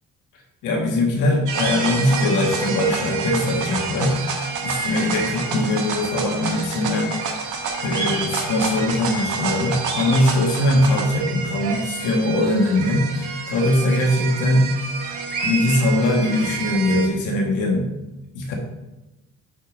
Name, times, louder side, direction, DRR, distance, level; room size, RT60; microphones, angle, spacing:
voice 1, 0.6-4.2 4.6-7.2 7.8-14.7 15.4-17.9 18.4-18.5, left 1 dB, 90° left, 1 dB, 1.7 m, -21 dB
sound 1, 1.5-17.1, right 5 dB, 85° right, 1.4 m, -28 dB
6.8 x 4.6 x 5.2 m, 1.0 s
cardioid pair, 90°, 30 cm